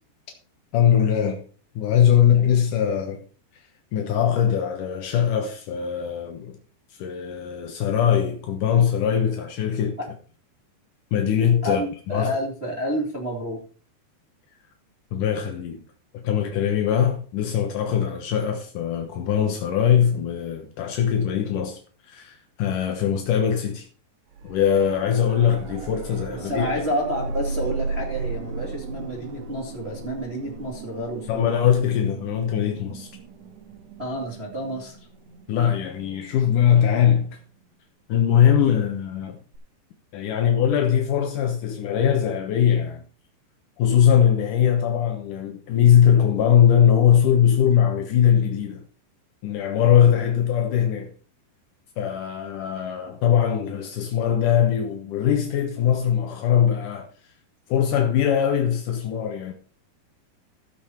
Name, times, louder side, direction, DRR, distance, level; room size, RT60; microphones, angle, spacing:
voice 1, 0.7-1.4 1.8-3.2 3.9-6.6 7.0-10.0 11.1-12.3 15.1-15.8 16.1-21.8 22.1-23.9 24.4-26.7 31.3-33.1 35.5-37.3 38.1-39.3 40.1-43.0 43.8-48.8 49.4-51.1 52.0-57.1 57.7-59.5, left 9 dB, 70° left, 2.0 m, -21 dB
voice 2, 11.6-13.6 26.4-31.5 34.0-35.0, equal, 20° right, 1.7 m, -29 dB
sound 1, 24.3-37.2 39.5-39.6, right 4 dB, 75° right, 3.4 m, -36 dB
14.5 x 7.0 x 4.3 m
omnidirectional pair, 5.1 m